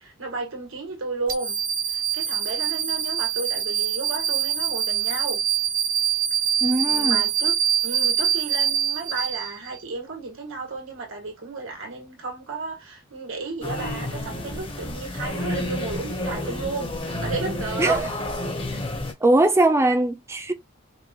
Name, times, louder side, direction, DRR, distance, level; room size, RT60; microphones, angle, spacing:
voice 1, 0.0-1.6 1.9-5.4 6.9-18.2, right 3 dB, 90° right, 1.8 m, -33 dB
sound 1, 1.3-9.8, right 10 dB, 45° right, 0.9 m, -24 dB
voice 2, 6.6-7.2 17.8-18.1 19.2-20.5, right 2 dB, 15° right, 0.6 m, -20 dB
sound 2, 13.6-19.1, left 1 dB, 25° left, 0.9 m, -30 dB
5.4 x 2.4 x 2.9 m
head